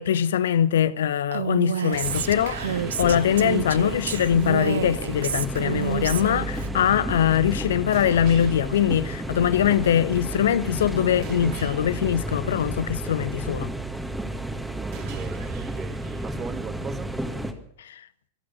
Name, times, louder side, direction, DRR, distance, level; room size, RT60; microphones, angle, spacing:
voice 1, 0.0-13.7 17.8-18.0, left 9 dB, 60° left, 0.8 m, -22 dB
Female speech woman speaking, 1.3-6.7, right 8 dB, 65° right, 0.7 m, -29 dB
sound 1, 1.9-3.9 7.9-9.9 11.2-13.2 14.9-16.9, right 7 dB, 45° right, 2.0 m, -43 dB
sound 2, 2.0-17.5, right 1 dB, 5° right, 1.9 m, -32 dB
voice 2, 14.8-17.1, right 6 dB, 20° right, 1.0 m, -38 dB
25.5 x 8.7 x 6.1 m
figure-of-eight pair, 90°, 0 cm